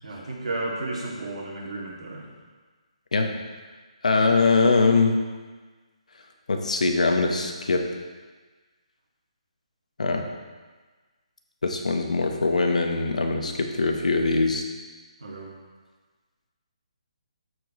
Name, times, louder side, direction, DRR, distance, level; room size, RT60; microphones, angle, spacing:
voice 1, 0.0-2.3 15.2-15.5, right 2 dB, 65° right, -4 dB, 2.4 m, -33 dB
voice 2, 4.0-5.1 6.5-7.8 10.0-10.2 11.6-14.6, left 3 dB, 85° left, 3 dB, 1.1 m, -22 dB
12.5 x 4.7 x 3.1 m, 1.4 s
hypercardioid pair, 170°, 4 cm